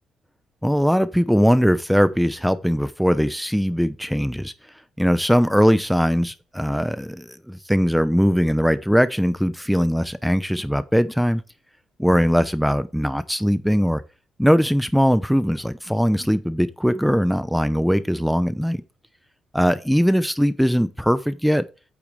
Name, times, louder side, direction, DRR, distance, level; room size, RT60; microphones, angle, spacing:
voice 1, 0.6-4.5 5.0-11.4 12.0-14.0 14.4-18.8 19.5-21.7, equal, ahead, 0.7 m, -20 dB
8.6 x 8.5 x 3.3 m
cardioid pair, 95°, 0 cm